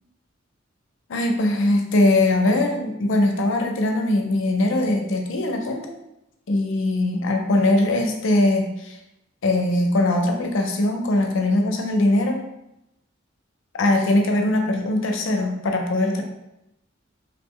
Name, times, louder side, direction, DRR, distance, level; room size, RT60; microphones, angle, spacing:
voice 1, 1.1-6.0 6.5-9.0 9.4-12.4 13.7-16.2, left 2 dB, 70° left, 3 dB, 0.5 m, -21 dB
2.7 x 2.0 x 3.6 m, 0.87 s
head